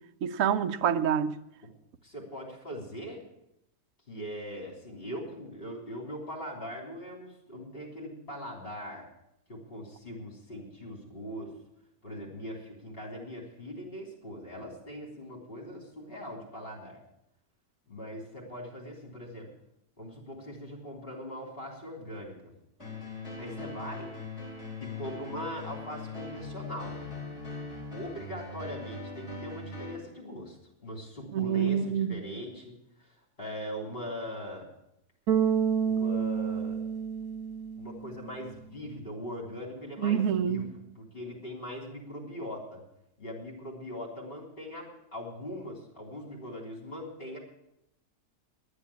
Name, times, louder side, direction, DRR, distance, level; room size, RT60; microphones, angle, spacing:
voice 1, 0.2-1.4 31.3-32.2 40.0-40.7, right 8 dB, 60° right, 1.0 m, -27 dB
voice 2, 2.0-3.2 4.1-9.1 9.5-11.6 12.0-17.0 17.9-19.5 20.0-22.5 23.4-24.1 24.8-27.0 27.9-33.1 33.4-34.7 35.9-36.8 37.8-40.7 41.0-42.8 43.2-47.4, equal, 35° left, 3.6 m, -41 dB
sound 1, 22.8-30.0, left 3 dB, 20° left, 4.0 m, -40 dB
Bass guitar, 35.3-38.4, right 7 dB, 85° right, 1.6 m, -29 dB
10.5 x 9.7 x 8.4 m
omnidirectional pair, 1.6 m